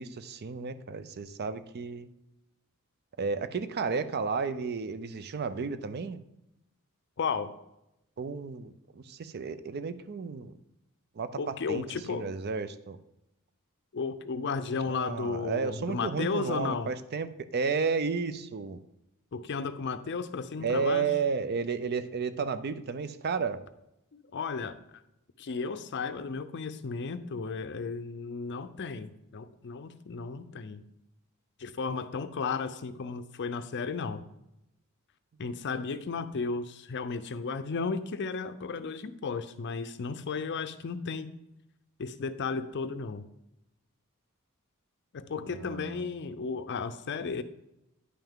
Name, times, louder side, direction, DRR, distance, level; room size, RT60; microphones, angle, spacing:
voice 1, 0.0-2.1 3.2-6.2 8.2-10.5 11.2-13.0 14.9-18.8 20.6-23.6 45.4-46.1, right 5 dB, 50° right, 13 dB, 0.5 m, -32 dB
voice 2, 7.2-7.5 11.4-12.3 13.9-16.9 19.3-21.1 24.1-24.8 25.4-30.8 31.6-34.2 35.4-41.3 42.0-43.3 45.1-47.4, left 4 dB, 55° left, 11 dB, 0.5 m, -34 dB
9.8 x 5.7 x 3.6 m, 0.87 s
head